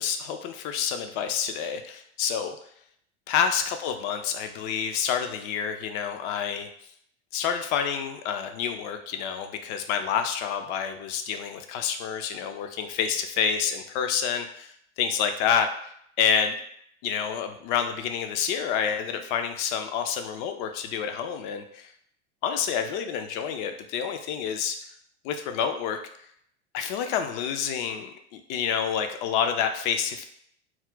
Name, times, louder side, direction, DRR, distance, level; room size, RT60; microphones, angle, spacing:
voice 1, 0.0-2.6 3.3-6.7 7.3-15.9 16.2-16.5 17.0-21.9 22.4-24.8 25.2-26.0 26.7-30.3, left 7 dB, 45° left, 7 dB, 0.4 m, -28 dB
2.3 x 2.1 x 3.8 m, 0.67 s
hypercardioid pair, 90°, 36 cm